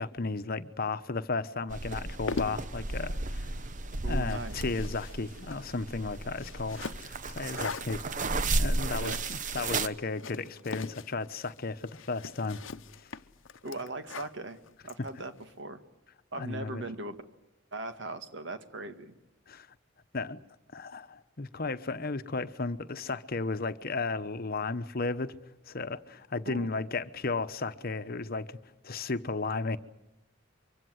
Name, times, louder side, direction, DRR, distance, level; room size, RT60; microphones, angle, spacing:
voice 1, 0.0-3.5 4.0-12.6 16.4-16.8 19.5-19.7 20.1-20.4 20.7-25.4 25.7-28.6 28.8-29.8, left 3 dB, 50° left, 1.0 m, -34 dB
sound 1, 1.7-9.9, right 2 dB, 40° right, 0.9 m, -33 dB
sound 2, 2.0-15.5, left 4 dB, 90° left, 0.9 m, -43 dB
voice 2, 4.0-4.6 8.9-9.2 13.6-15.8 16.3-17.2 17.7-19.1 26.4-26.7, right 2 dB, 65° right, 1.9 m, -39 dB
24.5 x 24.5 x 7.8 m
head